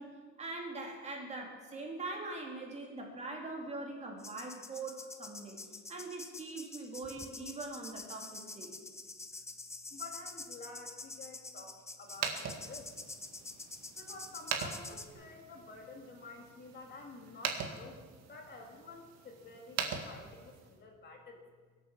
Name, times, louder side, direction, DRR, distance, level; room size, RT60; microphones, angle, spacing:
voice 1, 0.0-8.7, right 2 dB, 20° right, 0 dB, 2.4 m, -42 dB
sound 1, 4.2-15.1, left 3 dB, 10° left, 0.6 m, -47 dB
voice 2, 9.9-12.9 14.0-18.0 18.3-21.4, left 3 dB, 30° left, 2 dB, 2.0 m, -50 dB
sound 2, 12.0-20.8, right 6 dB, 55° right, 1.9 m, -42 dB
22.5 x 8.2 x 7.3 m, 1.5 s
cardioid pair, 175°, 32 cm